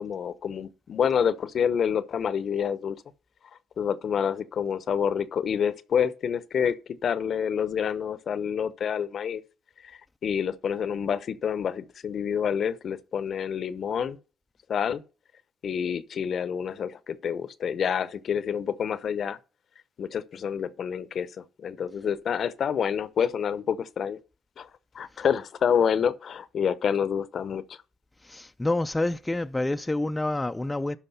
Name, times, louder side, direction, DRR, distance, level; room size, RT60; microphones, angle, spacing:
voice 1, 0.0-3.0 3.8-6.7 7.0-9.4 10.2-14.2 14.7-15.0 15.6-19.4 20.0-24.2 24.6-24.7 24.9-27.6, left 7 dB, 60° left, 0.8 m, -28 dB
voice 2, 28.2-31.0, left 2 dB, 15° left, 0.5 m, -28 dB
12.0 x 4.9 x 5.6 m
cardioid pair, 90°, 0 cm